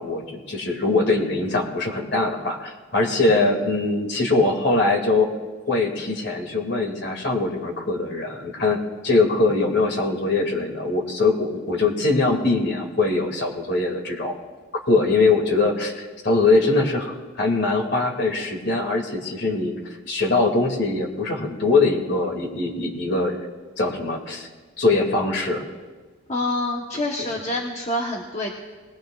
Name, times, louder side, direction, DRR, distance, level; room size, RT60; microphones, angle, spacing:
voice 1, 0.0-5.3 5.7-8.8 9.0-14.3 14.9-19.7 20.1-23.4 23.8-24.5 24.8-25.6, left 3 dB, 60° left, 1 dB, 2.3 m, -22 dB
voice 2, 26.3-28.5, left 1 dB, 35° left, -1 dB, 1.1 m, -26 dB
20.5 x 20.0 x 2.4 m, 1.4 s
head